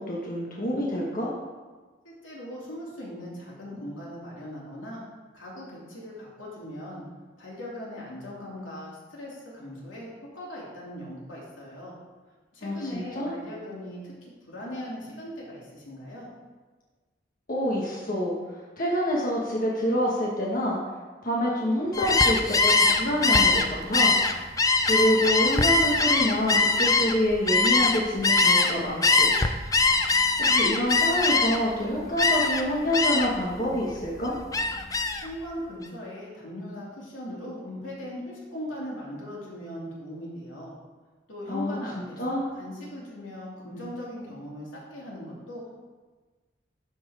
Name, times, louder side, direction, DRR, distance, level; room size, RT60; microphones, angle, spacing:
voice 1, 0.0-1.3 12.6-13.3 17.5-18.3 18.8-20.8 21.2-24.1 24.8-29.3 30.4-34.3 41.5-42.4, equal, 45° left, -4 dB, 1.4 m, -27 dB
voice 2, 2.0-5.0 5.3-7.0 7.4-11.9 12.5-14.1 14.5-16.3 35.2-40.7 41.3-45.7, equal, 90° left, -5 dB, 3.0 m, -39 dB
Gull seagull, 21.9-28.7 29.0-31.7 32.2-32.6 32.9-33.4 33.8-35.3, left 3 dB, 20° left, 0.5 m, -22 dB
12.0 x 4.5 x 5.0 m, 1.3 s
head